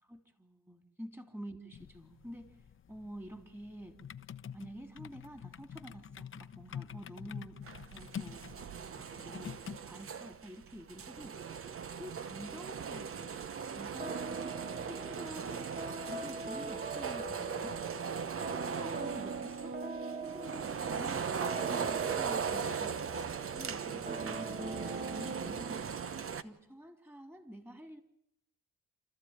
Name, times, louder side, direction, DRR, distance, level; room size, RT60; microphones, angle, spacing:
voice 1, 0.0-2.5 2.9-4.0 4.5-7.6 7.9-8.4 9.0-11.4 11.9-13.4 13.7-14.6 14.9-15.7 16.1-17.8 18.4-19.8 20.2-23.0 23.5-25.8 26.4-28.0, equal, 5° right, 6 dB, 3.3 m, -48 dB
sound 1, 1.7-9.8, left 8 dB, 40° left, 0.9 m, -47 dB
sound 2, 7.6-26.4, right 7 dB, 45° right, 1.1 m, -39 dB
sound 3, 14.0-26.4, right 3 dB, 30° right, 1.7 m, -42 dB
29.0 x 14.0 x 9.0 m, 0.78 s
cardioid pair, 90°, 30 cm